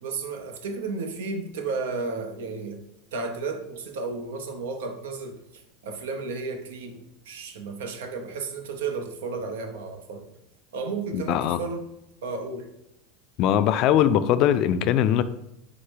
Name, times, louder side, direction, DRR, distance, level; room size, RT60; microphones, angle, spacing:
voice 1, 0.0-2.8 3.1-10.2 10.7-11.9 12.2-12.7, right 4 dB, 85° right, 0.7 m, -33 dB
voice 2, 11.1-11.6 13.4-15.2, left 10 dB, 50° left, 0.3 m, -21 dB
4.8 x 2.1 x 4.5 m
supercardioid pair, 125°, 0 cm